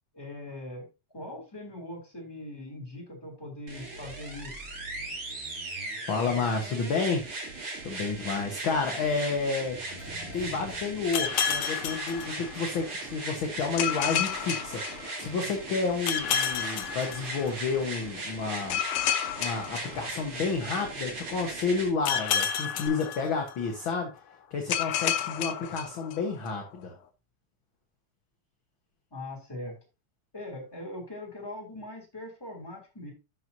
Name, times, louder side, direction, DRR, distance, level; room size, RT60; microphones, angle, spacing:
voice 1, 0.1-0.9 1.1-4.6 29.1-29.7 30.3-33.1, left 1 dB, 10° left, -1 dB, 3.1 m, -41 dB
sound 1, 3.7-21.9 22.9-23.0, right 2 dB, 45° right, 3.1 m, -38 dB
voice 2, 6.1-7.3 7.8-9.8 10.3-18.8 19.4-24.1 24.5-26.9, left 4 dB, 55° left, 3 dB, 1.7 m, -30 dB
sound 2, 9.7-12.5 12.8-12.9, left 1 dB, 30° left, 3.5 m, -47 dB
sound 3, 11.1-12.9 13.8-15.5 16.1-17.8 18.7-20.7 22.0-23.8 24.7-26.5, left 9 dB, 75° left, 1.3 m, -31 dB
11.5 x 6.2 x 2.8 m, 0.28 s
omnidirectional pair, 3.4 m